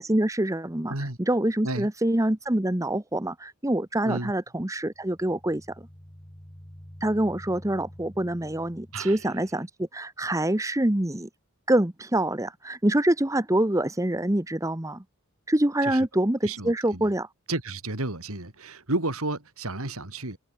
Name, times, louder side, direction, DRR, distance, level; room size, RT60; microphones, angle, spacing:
voice 1, 0.0-5.9 7.0-11.3 11.7-15.0 15.5-17.3, right 1 dB, 15° right, 1.0 m, -25 dB
sound 1, 4.9-9.6, equal, 20° left, 3.2 m, -48 dB
voice 2, 16.4-17.1 17.5-20.4, right 2 dB, 70° right, 3.4 m, -32 dB
head